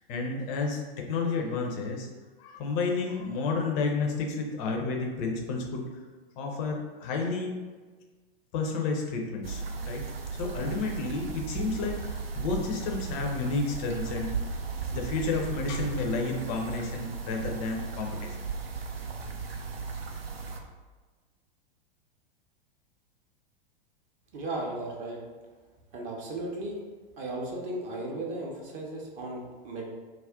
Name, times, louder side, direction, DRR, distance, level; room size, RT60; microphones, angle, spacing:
voice 1, 0.0-2.1 2.4-5.8 6.4-7.5 8.5-10.0 10.3-14.4 14.9-18.4, left 4 dB, 25° left, 1 dB, 0.4 m, -31 dB
sound 1, 9.4-20.6, right 5 dB, 85° right, 0.5 m, -36 dB
voice 2, 24.3-25.2 25.9-26.8 27.2-29.9, right 2 dB, 25° right, -1 dB, 0.5 m, -35 dB
2.3 x 2.1 x 3.5 m, 1.3 s
figure-of-eight pair, 100°, 29 cm